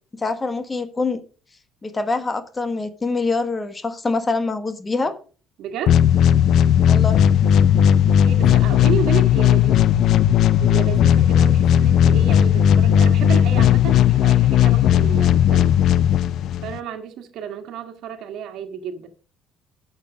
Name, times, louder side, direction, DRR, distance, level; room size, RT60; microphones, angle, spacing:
voice 1, 0.1-1.2 1.8-5.1 6.9-7.2, left 3 dB, 20° left, 1.3 m, -24 dB
voice 2, 5.6-6.0 8.2-9.9 10.6-15.7 16.6-19.1, right 7 dB, 65° right, 1.7 m, -31 dB
sound 1, 5.9-16.8, left 9 dB, 60° left, 0.5 m, -16 dB
8.6 x 6.7 x 6.1 m
cardioid pair, 110°, 0 cm